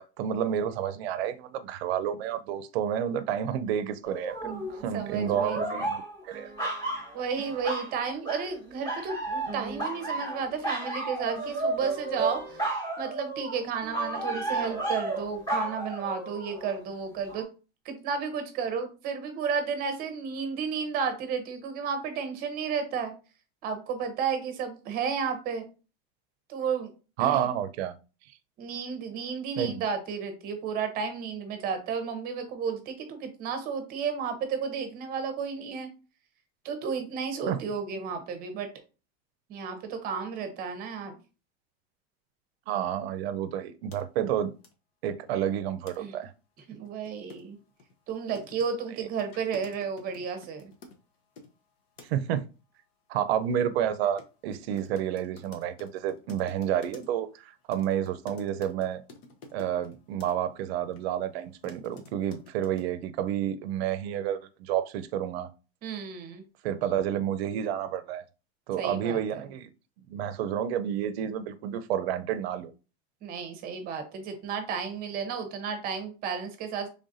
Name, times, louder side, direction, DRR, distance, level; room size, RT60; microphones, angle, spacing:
voice 1, 0.0-6.7 27.2-27.9 29.6-29.8 37.5-37.6 42.7-44.5 45.0-46.3 52.1-52.4 53.1-59.0 59.5-65.5 66.6-68.2 68.7-69.7 70.1-72.7, right 10 dB, 75° right, 0.5 m, -30 dB
sound 1, 4.0-4.8 5.2-7.9 8.2-8.6 8.8-16.8 17.3-17.4, right 2 dB, 15° left, 1.1 m, -33 dB
voice 2, 4.4-5.8 7.1-17.5 17.8-23.1 23.6-25.7 26.5-26.9 27.2-27.5 28.6-35.9 36.6-38.7 39.5-41.2 46.0-46.1 46.7-47.6 48.1-50.7 65.8-66.4 68.8-69.4 73.2-76.9, right 6 dB, 30° right, 0.7 m, -33 dB
sound 2, 43.9-44.0 44.6-44.7 45.9-46.0 46.2-46.3 46.6-51.5 52.0-52.3 54.2-54.3 54.5-57.3 57.7-60.3 60.9-61.0 61.4-62.9, left 3 dB, 70° left, 0.9 m, -50 dB
3.9 x 3.4 x 2.5 m
supercardioid pair, 165°, 31 cm